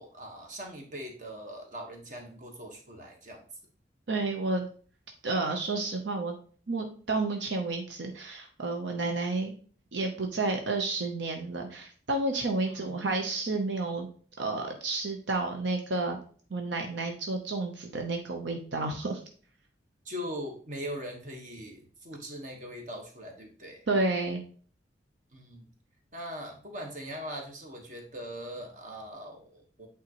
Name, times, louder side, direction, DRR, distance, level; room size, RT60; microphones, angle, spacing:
voice 1, 0.0-3.5 12.6-13.0 20.0-23.8 25.3-25.7 26.1-29.9, equal, 45° right, 2 dB, 1.4 m, -41 dB
voice 2, 4.1-4.7 5.2-6.4 6.7-9.5 9.9-14.1 14.4-16.2 16.5-19.2 23.9-24.4, right 3 dB, 80° right, 3 dB, 0.8 m, -31 dB
8.7 x 3.7 x 3.0 m, 0.43 s
head